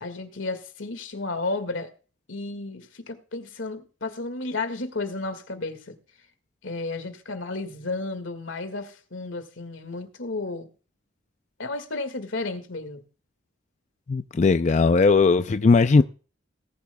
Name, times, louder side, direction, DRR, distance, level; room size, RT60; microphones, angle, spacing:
voice 1, 0.0-1.9 2.3-6.0 6.6-10.7 11.6-13.0, left 3 dB, 85° left, 1.9 m, -32 dB
voice 2, 14.1-16.0, left 4 dB, 40° left, 0.4 m, -18 dB
19.0 x 10.5 x 2.2 m
head